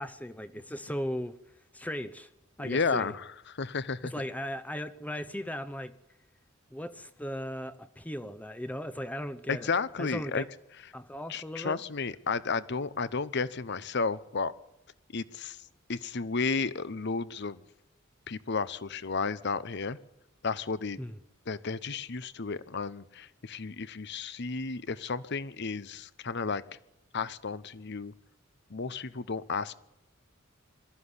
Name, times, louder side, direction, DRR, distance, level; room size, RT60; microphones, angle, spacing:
voice 1, 0.0-1.4 1.7-2.3 2.6-3.1 4.0-5.9 6.7-9.7 10.0-10.5 10.9-11.8 21.0-21.1, equal, 5° left, 0.8 m, -37 dB
voice 2, 2.6-4.2 9.5-10.4 11.3-14.5 15.1-15.6 15.9-17.6 18.3-20.0 20.4-21.0 21.5-26.6 27.1-28.1 28.7-29.8, left 4 dB, 55° left, 0.9 m, -32 dB
22.0 x 13.5 x 9.8 m
head